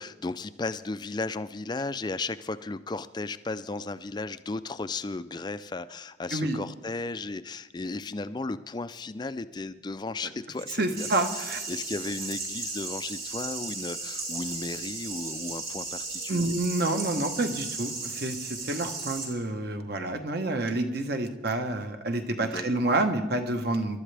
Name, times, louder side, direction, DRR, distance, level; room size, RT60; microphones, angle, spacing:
voice 1, 0.0-11.1 11.3-16.6 22.4-22.7, left 3 dB, 20° left, 13 dB, 0.4 m, -35 dB
voice 2, 10.8-11.6 16.3-24.0, right 2 dB, 50° right, 6 dB, 1.1 m, -28 dB
sound 1, 11.0-19.3, right 3 dB, 85° right, 4.9 m, -36 dB
25.5 x 12.5 x 3.4 m, 1.1 s
head